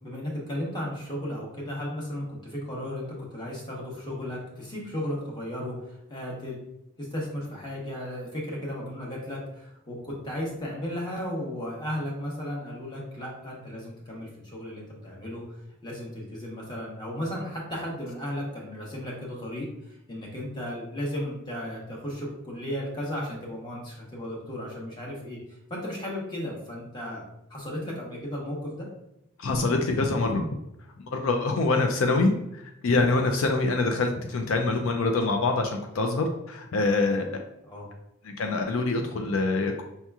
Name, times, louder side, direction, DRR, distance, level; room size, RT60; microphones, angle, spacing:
voice 1, 0.0-6.6 7.0-27.2 27.5-28.9 37.6-37.9, equal, 20° left, -3 dB, 1.1 m, -35 dB
voice 2, 29.4-30.5 31.1-37.3 38.3-39.8, left 3 dB, 70° left, 4 dB, 0.4 m, -25 dB
5.5 x 2.9 x 2.3 m, 0.83 s
head